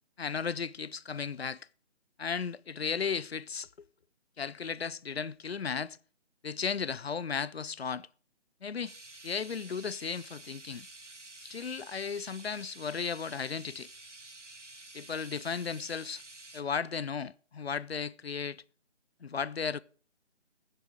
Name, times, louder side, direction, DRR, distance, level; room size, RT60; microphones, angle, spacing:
voice 1, 0.2-1.7 2.2-3.9 4.4-6.0 6.4-8.1 8.6-8.9 9.2-10.9 11.4-13.9 14.9-16.2 16.5-18.6 19.2-19.8, left 6 dB, 60° left, 0.5 m, -35 dB
sound 1, 8.8-16.6, right 2 dB, 80° right, 1.6 m, -50 dB
16.0 x 7.6 x 4.9 m
figure-of-eight pair, 150°, 35 cm